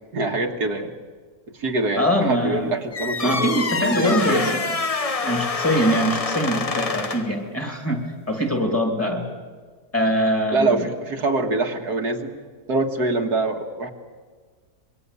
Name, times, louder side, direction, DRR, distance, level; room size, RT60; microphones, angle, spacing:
voice 1, 0.1-0.9 1.6-4.5 8.6-8.7 10.5-12.3 12.7-13.9, right 2 dB, 80° right, 3 dB, 2.3 m, -24 dB
voice 2, 2.0-2.7 3.2-4.7 5.2-9.3 9.9-10.9, equal, 10° left, 3 dB, 2.9 m, -23 dB
sound 1, 2.9-7.4, left 3 dB, 25° left, 0.9 m, -26 dB
26.5 x 22.0 x 8.4 m, 1.5 s
omnidirectional pair, 1.7 m